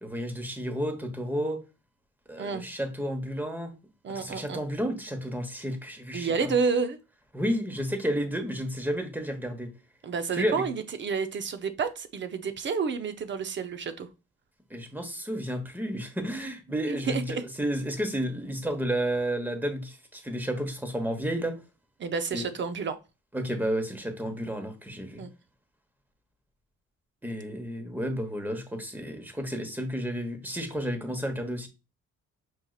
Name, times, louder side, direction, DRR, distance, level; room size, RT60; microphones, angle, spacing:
voice 1, 0.0-1.6 2.3-3.7 4.1-6.5 7.3-9.7 10.4-10.6 14.7-21.5 22.3-22.4 23.3-25.2 27.2-31.7, equal, 5° right, 1.1 m, -31 dB
voice 2, 4.0-4.6 6.1-7.0 10.0-14.1 16.9-17.4 22.0-23.0 25.2-25.3, right 5 dB, 40° right, 0.7 m, -30 dB
6.4 x 2.8 x 2.4 m
cardioid pair, 90°, 30 cm